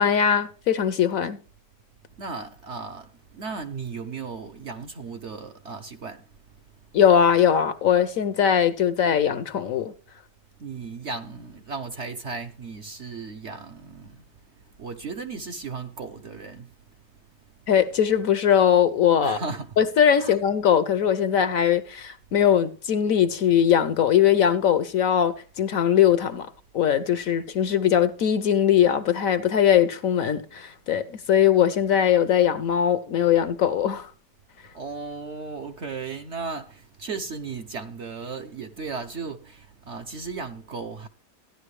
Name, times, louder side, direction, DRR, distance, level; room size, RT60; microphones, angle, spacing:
voice 1, 0.0-1.4 6.9-9.9 17.7-19.4 19.8-34.1, left 9 dB, 60° left, 1.0 m, -21 dB
voice 2, 2.2-6.2 10.6-14.2 14.8-16.7 19.2-19.7 20.2-20.4 34.7-41.1, right 4 dB, 55° right, 0.9 m, -35 dB
14.0 x 10.5 x 3.1 m
omnidirectional pair, 1.8 m